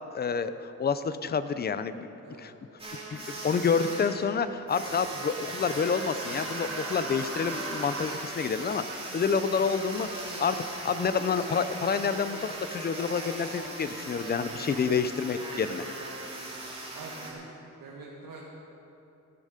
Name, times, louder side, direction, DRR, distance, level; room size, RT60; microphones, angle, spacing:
voice 1, 0.1-2.1 2.4-2.5 3.1-15.9, left 6 dB, 30° left, 12 dB, 0.5 m, -28 dB
voice 2, 2.2-2.5 16.9-17.5 17.8-18.4, right 3 dB, 85° right, -4 dB, 1.7 m, -45 dB
sound 1, 2.8-17.3, right 2 dB, 15° right, 2.3 m, -39 dB
Human voice, 5.3-8.1, right 3 dB, 45° right, 1.9 m, -40 dB
14.0 x 12.0 x 5.0 m, 2.9 s
wide cardioid pair, 160°, 32 cm